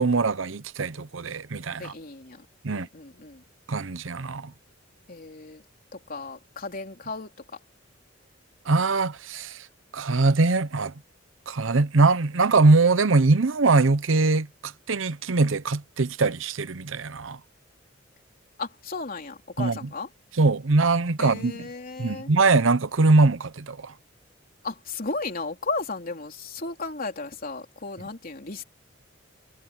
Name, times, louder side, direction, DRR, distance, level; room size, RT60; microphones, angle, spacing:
voice 1, 0.0-1.9 2.6-2.9 3.7-4.5 8.7-9.7 9.9-10.9 11.5-17.4 19.6-19.8 20.4-21.5 22.0-23.9, right 3 dB, 75° right, 0.8 m, -22 dB
voice 2, 1.8-3.4 5.1-5.6 5.9-7.3 18.6-20.1 21.2-22.3 24.6-28.6, left 3 dB, 45° left, 3.5 m, -35 dB
head